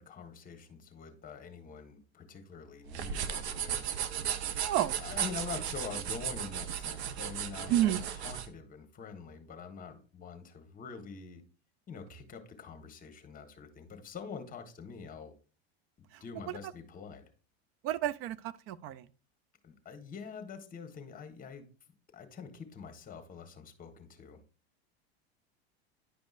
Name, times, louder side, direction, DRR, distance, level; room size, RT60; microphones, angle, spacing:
voice 1, 0.0-3.9 5.0-11.4 11.9-15.3 16.2-17.3 19.6-21.7 22.1-24.4, left 6 dB, 25° left, 1.3 m, -45 dB
sound 1, 2.9-8.5, right 9 dB, 85° right, 0.7 m, -36 dB
voice 2, 4.6-5.0 7.7-8.0 16.1-16.2 17.8-19.1, right 12 dB, 45° right, 0.4 m, -30 dB
10.0 x 5.2 x 2.5 m
hypercardioid pair, 105°, 32 cm